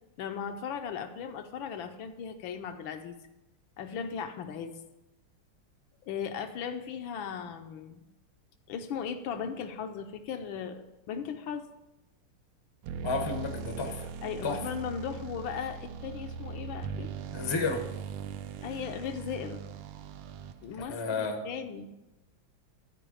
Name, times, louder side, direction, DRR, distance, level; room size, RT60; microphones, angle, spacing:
voice 1, 0.2-3.2 3.8-4.8 6.1-8.0 8.7-11.7 14.2-17.1 18.6-19.6 20.6-21.9, left 7 dB, 75° left, 7 dB, 1.3 m, -37 dB
sound 1, 12.8-20.8, right 6 dB, 80° right, 1.4 m, -40 dB
voice 2, 13.0-14.1 14.4-14.6 17.3-17.8 20.7-21.4, left 4 dB, 30° left, 3 dB, 0.4 m, -32 dB
12.0 x 4.8 x 4.9 m, 0.97 s
omnidirectional pair, 2.3 m